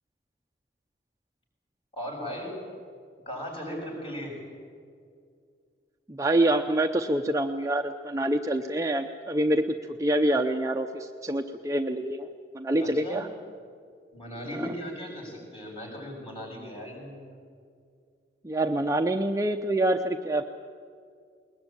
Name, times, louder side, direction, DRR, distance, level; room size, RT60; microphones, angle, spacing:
voice 1, 1.9-2.5 3.3-4.4 12.8-13.2 14.1-17.2, equal, 30° left, -1 dB, 7.1 m, -37 dB
voice 2, 6.1-9.6 10.0-12.3 12.5-13.3 14.5-14.7 18.4-20.4, right 1 dB, 15° right, 5 dB, 0.6 m, -26 dB
21.0 x 20.5 x 9.0 m, 2.2 s
head